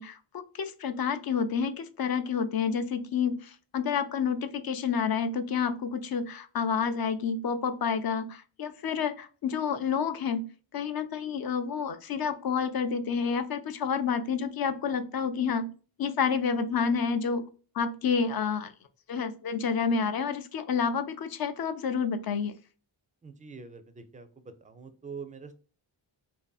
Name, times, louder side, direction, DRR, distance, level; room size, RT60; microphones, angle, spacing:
voice 1, 0.0-10.5 10.7-15.7 16.0-17.5 17.7-18.7 19.1-22.5, left 6 dB, 50° left, 10 dB, 0.5 m, -29 dB
voice 2, 23.2-25.5, right 5 dB, 20° right, 9 dB, 0.4 m, -44 dB
2.6 x 2.6 x 2.3 m, 0.38 s
cardioid pair, 70°, 46 cm